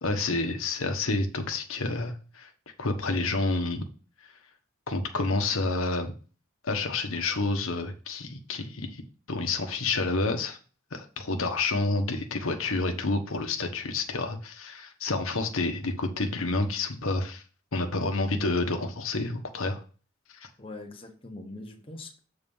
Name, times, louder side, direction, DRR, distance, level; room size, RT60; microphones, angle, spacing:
voice 1, 0.0-2.5 2.8-3.8 4.9-6.1 6.6-9.0 9.3-10.6 10.9-17.4 17.7-19.8, left 3 dB, 85° left, 5 dB, 1.1 m, -29 dB
voice 2, 20.6-22.2, left 2 dB, 25° left, 2 dB, 1.0 m, -42 dB
7.0 x 4.0 x 5.4 m, 0.37 s
head